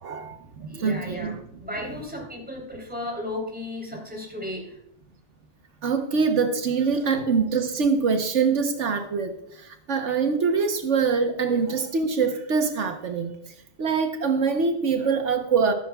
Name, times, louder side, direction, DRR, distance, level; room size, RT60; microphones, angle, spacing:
voice 1, 0.0-1.4 5.8-13.3 13.8-15.7, right 5 dB, 80° right, 5 dB, 1.3 m, -24 dB
voice 2, 0.6-1.4 1.6-4.8 11.4-11.7, left 1 dB, 10° right, -1 dB, 3.4 m, -35 dB
14.5 x 13.5 x 2.3 m, 0.78 s
omnidirectional pair, 1.2 m